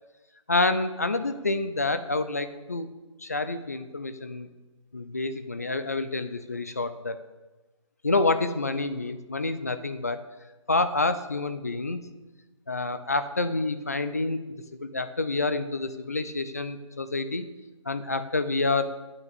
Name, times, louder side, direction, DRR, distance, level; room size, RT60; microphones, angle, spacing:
voice 1, 0.5-2.9 3.2-4.5 4.9-7.2 8.0-10.2 10.7-12.0 12.7-17.5 17.9-18.9, left 3 dB, 30° left, 11 dB, 0.5 m, -28 dB
8.8 x 6.7 x 8.4 m, 1.1 s
hypercardioid pair, 175°, 17 cm